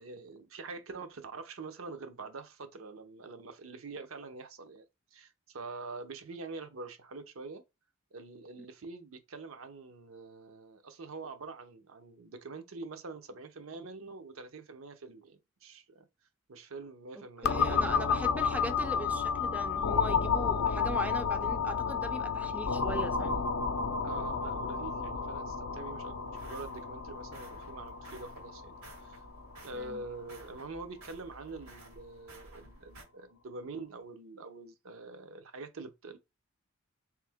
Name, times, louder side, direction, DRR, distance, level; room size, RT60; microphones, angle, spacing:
voice 1, 0.0-7.6 8.1-16.1 16.5-18.2 20.8-21.0 24.0-29.2 29.6-36.2, right 3 dB, 70° right, 0.7 m, -45 dB
voice 2, 17.2-23.4 29.7-30.0, right 1 dB, 5° right, 0.4 m, -40 dB
sound 1, 17.4-31.0, left 6 dB, 70° left, 0.5 m, -32 dB
sound 2, 25.9-33.0, right 2 dB, 90° right, 1.8 m, -54 dB
3.5 x 3.2 x 3.5 m
head